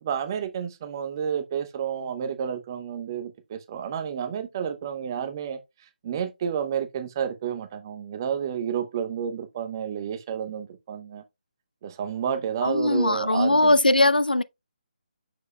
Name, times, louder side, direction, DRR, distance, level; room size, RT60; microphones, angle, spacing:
voice 1, 0.0-5.6 6.0-11.2 11.8-13.8, right 8 dB, 25° right, 0.7 m, -30 dB
voice 2, 12.6-14.4, left 2 dB, 80° left, 0.5 m, -20 dB
7.0 x 6.2 x 2.2 m
figure-of-eight pair, 150°, 5 cm